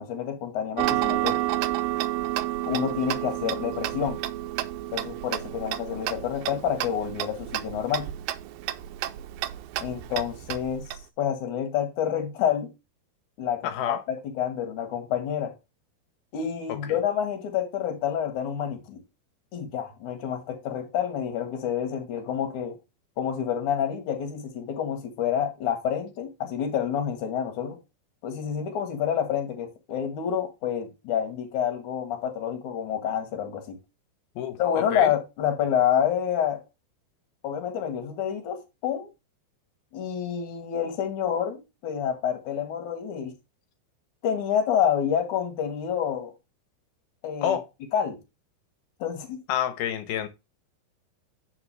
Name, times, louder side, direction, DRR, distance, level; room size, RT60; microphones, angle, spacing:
voice 1, 0.0-1.4 2.7-4.2 4.9-8.1 9.8-10.9 11.2-12.7 13.4-15.5 16.3-19.0 19.5-22.8 23.2-27.8 28.2-33.8 34.6-36.6 37.4-39.1 39.9-43.3 44.2-46.3 47.2-47.6 47.9-48.2 49.0-49.4, left 9 dB, 55° left, 2.9 m, -28 dB
Tick-tock, 0.8-11.0, right 15 dB, 80° right, 2.1 m, -30 dB
voice 2, 13.6-14.0 16.7-17.0 34.4-35.1 47.4-47.7 49.5-50.3, left 10 dB, 75° left, 2.9 m, -29 dB
9.5 x 6.0 x 3.4 m
omnidirectional pair, 4.5 m